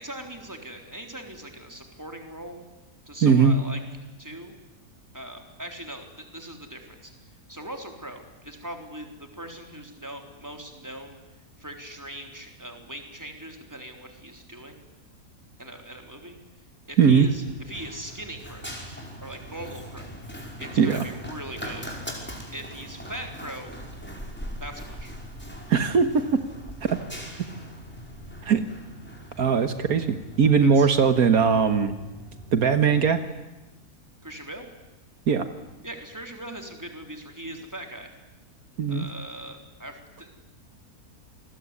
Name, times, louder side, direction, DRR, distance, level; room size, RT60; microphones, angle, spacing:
voice 1, 0.0-2.7 3.1-3.8 4.2-4.5 5.1-14.8 15.6-16.4 16.8-18.7 19.2-20.1 20.6-21.9 22.5-23.8 24.6-25.2 30.6-30.9 34.2-34.7 35.8-38.1 38.9-40.4, right 1 dB, 10° right, 5 dB, 3.8 m, -40 dB
voice 2, 3.2-3.5 17.0-17.3 20.8-21.0 25.7-26.5 26.8-27.0 28.4-28.7 29.4-31.9 32.5-33.2 35.3-35.5 38.8-39.1, right 6 dB, 70° right, 10 dB, 1.8 m, -20 dB
Run, 17.1-33.1, equal, 5° left, 5.1 m, -41 dB
28.5 x 21.0 x 9.8 m, 1.1 s
omnidirectional pair, 1.6 m